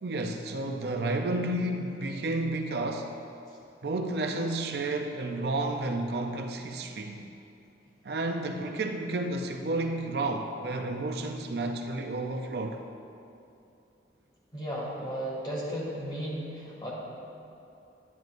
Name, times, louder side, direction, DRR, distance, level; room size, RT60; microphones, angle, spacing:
voice 1, 0.0-3.1 3.8-7.2 8.0-12.8, right 2 dB, 65° right, 4 dB, 0.5 m, -31 dB
voice 2, 14.5-16.9, equal, 25° left, -6 dB, 2.1 m, -34 dB
10.5 x 9.8 x 2.5 m, 2.7 s
head